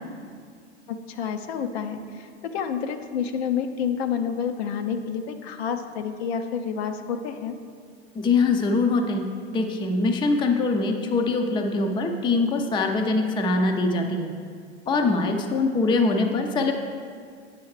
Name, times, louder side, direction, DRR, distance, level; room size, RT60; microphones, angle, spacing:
voice 1, 0.9-7.5, left 7 dB, 70° left, 7 dB, 0.6 m, -29 dB
voice 2, 8.2-14.3 14.9-16.7, left 3 dB, 15° left, 4 dB, 0.4 m, -23 dB
8.4 x 5.5 x 3.1 m, 2.1 s
hypercardioid pair, 110°, 33 cm